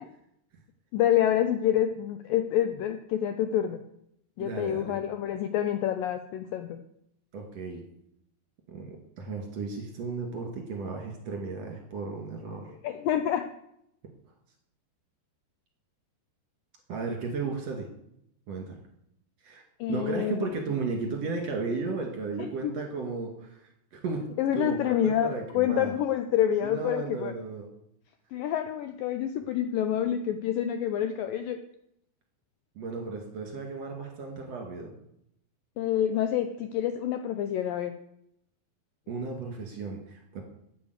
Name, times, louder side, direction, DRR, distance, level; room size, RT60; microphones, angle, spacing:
voice 1, 0.9-3.8 4.4-6.8 12.8-13.4 19.8-20.6 22.6-22.7 24.4-27.3 28.3-31.6 35.8-37.9, left 10 dB, 85° left, 8 dB, 2.0 m, -27 dB
voice 2, 4.4-5.0 7.3-7.8 8.7-12.7 16.9-17.9 18.5-18.8 19.4-19.6 19.9-23.6 23.9-24.3 24.5-25.9 26.6-27.7 32.8-35.0 39.1-40.4, right 4 dB, 45° right, 2 dB, 2.8 m, -34 dB
9.7 x 9.2 x 8.0 m, 0.76 s
omnidirectional pair, 4.8 m